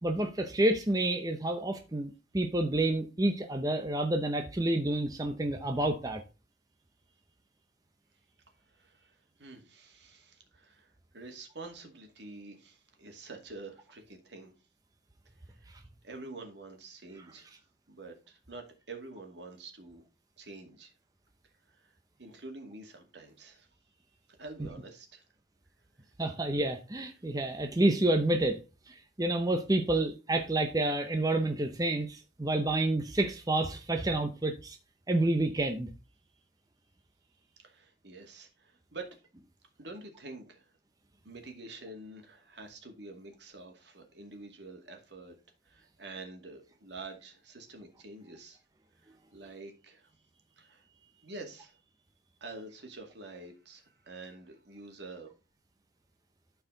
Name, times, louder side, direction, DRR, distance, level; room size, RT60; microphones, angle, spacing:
voice 1, 0.0-6.2 26.2-28.6 28.9-34.8 35.1-35.9, right 1 dB, 20° right, 0.7 m, -29 dB
voice 2, 8.7-14.5 15.5-15.7 16.0-17.5 17.9-20.0 20.4-20.9 21.7-23.7 24.4-25.2 37.6-39.2 39.8-40.7 41.2-45.4 45.6-48.6 49.0-50.1 50.6-51.8 52.4-55.3, right 3 dB, 70° right, 2.2 m, -47 dB
12.5 x 4.7 x 3.9 m
head